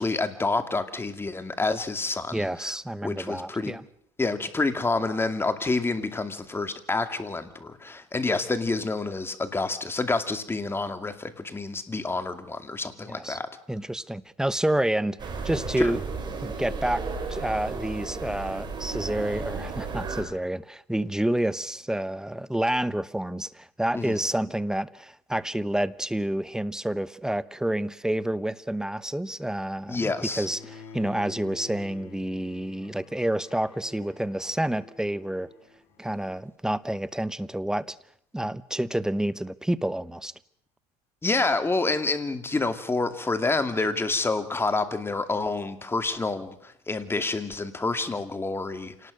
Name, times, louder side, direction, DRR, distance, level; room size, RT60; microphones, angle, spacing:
voice 1, 0.0-2.7 3.0-3.8 4.2-13.5 15.8-15.9 23.9-24.2 29.9-30.5 41.2-49.1, left 3 dB, 15° left, 2.4 m, -28 dB
voice 2, 2.3-3.8 13.1-13.4 13.7-16.0 16.4-17.0 17.3-35.5 36.0-38.0 38.3-40.3, right 1 dB, 5° right, 0.9 m, -29 dB
sound 1, 15.2-20.2, right 4 dB, 30° right, 5.6 m, -33 dB
Bowed string instrument, 30.3-36.4, left 4 dB, 70° left, 5.5 m, -48 dB
27.5 x 19.0 x 6.5 m
supercardioid pair, 105°, 16 cm